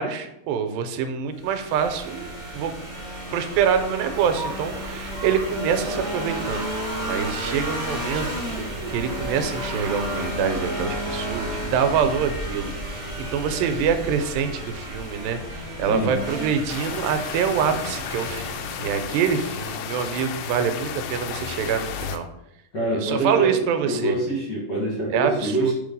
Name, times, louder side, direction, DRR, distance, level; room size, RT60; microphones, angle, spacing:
voice 1, 0.0-2.3 2.5-2.7 3.3-6.7 7.0-8.3 8.6-22.3 22.9-24.2 25.1-25.7, right 7 dB, 90° right, 8 dB, 2.4 m, -25 dB
sound 1, 1.4-19.2, equal, 40° right, 0.4 m, -32 dB
sound 2, 4.1-10.3, right 3 dB, 75° right, 1.6 m, -37 dB
sound 3, 16.7-22.2, left 7 dB, 85° left, 1.8 m, -33 dB
voice 2, 22.7-23.5 23.8-25.7, right 1 dB, 50° left, -5 dB, 1.3 m, -25 dB
6.2 x 3.2 x 5.3 m, 0.84 s
omnidirectional pair, 4.1 m